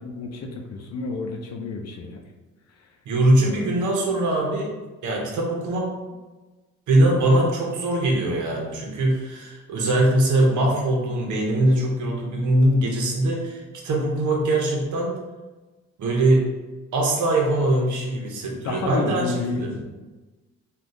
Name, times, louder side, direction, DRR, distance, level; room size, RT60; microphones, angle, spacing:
voice 1, 0.0-2.2 3.4-3.7 18.5-19.8, left 3 dB, 60° left, 1 dB, 0.6 m, -30 dB
voice 2, 3.1-4.7 5.0-5.9 6.9-15.2 16.0-16.5 16.9-19.7, right 1 dB, 75° right, 0 dB, 0.9 m, -22 dB
3.4 x 2.4 x 2.6 m, 1.2 s
cardioid pair, 90°, 30 cm